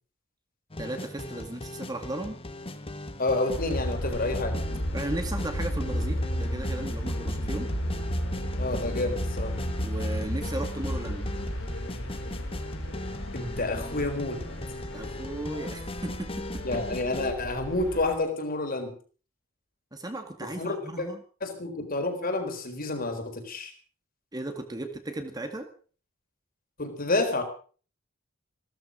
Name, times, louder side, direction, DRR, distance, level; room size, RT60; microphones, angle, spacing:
sound 1, 0.7-17.3, left 1 dB, 25° left, 1.5 m, -39 dB
voice 1, 0.8-2.4 4.7-7.7 9.8-11.3 14.9-16.6 19.9-21.2 24.3-25.7, right 1 dB, 20° right, 6 dB, 2.1 m, -36 dB
voice 2, 3.2-4.6 8.6-9.6 13.3-14.4 16.6-19.0 20.4-21.1 21.4-23.7 26.8-27.4, left 2 dB, 40° left, 5 dB, 4.0 m, -29 dB
sound 2, 3.5-18.1, equal, 60° left, 4.9 m, -33 dB
16.5 x 13.5 x 6.3 m, 0.42 s
head